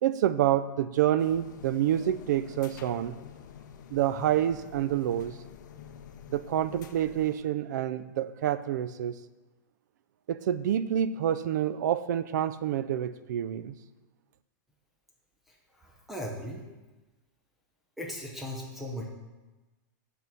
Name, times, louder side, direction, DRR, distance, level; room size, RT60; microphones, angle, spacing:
voice 1, 0.0-3.1 3.9-5.3 6.3-9.1 10.3-13.7, right 11 dB, 65° right, 14 dB, 0.4 m, -28 dB
sound 1, 1.2-7.4, left 8 dB, 70° left, 0.5 m, -48 dB
voice 2, 16.1-16.6 18.0-19.1, equal, ahead, -2 dB, 0.5 m, -37 dB
6.7 x 3.6 x 5.9 m, 1.1 s
supercardioid pair, 170°, 10 cm